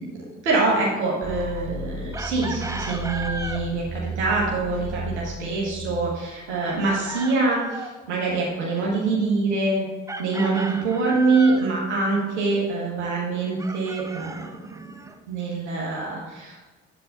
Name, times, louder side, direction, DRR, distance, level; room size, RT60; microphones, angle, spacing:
voice 1, 0.4-9.8 10.2-14.4 15.3-16.6, right 3 dB, 75° right, -4 dB, 1.4 m, -24 dB
sound 1, 1.2-7.1, right 2 dB, 40° right, 0.9 m, -35 dB
Chicken rooster, 2.1-3.7 6.6-8.0 10.1-11.7 13.6-15.1, right 2 dB, 10° right, 0.6 m, -35 dB
8.1 x 8.0 x 3.8 m, 1.3 s
figure-of-eight pair, 40°, 34 cm